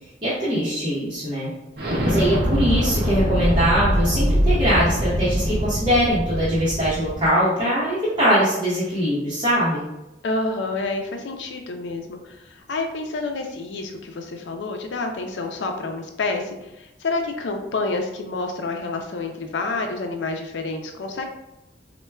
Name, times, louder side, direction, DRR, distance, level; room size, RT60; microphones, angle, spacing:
voice 1, 0.2-1.5 2.0-9.9, equal, 25° right, -11 dB, 0.8 m, -22 dB
Explosion, 1.8-7.3, equal, 60° right, 0.7 m, -23 dB
voice 2, 10.2-21.2, left 3 dB, 90° left, 4 dB, 0.4 m, -28 dB
4.3 x 2.1 x 2.2 m, 0.94 s
head